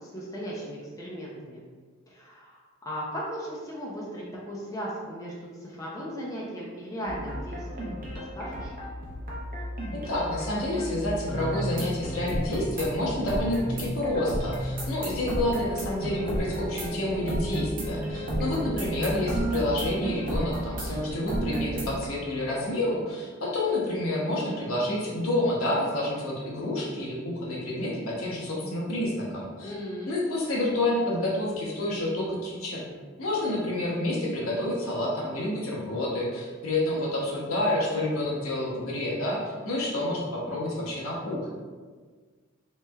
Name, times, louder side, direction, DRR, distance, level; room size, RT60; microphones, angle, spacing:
voice 1, 0.0-1.6 2.1-2.6 2.9-5.3 5.6-8.7 29.6-30.1, equal, 15° left, -5 dB, 0.5 m, -37 dB
sound 1, 7.1-22.1, right 1 dB, 40° right, 0.7 m, -32 dB
voice 2, 9.9-29.7 30.1-32.8 33.2-39.4 39.6-41.5, left 1 dB, 75° left, -4 dB, 0.8 m, -29 dB
3.2 x 3.1 x 2.3 m, 1.5 s
head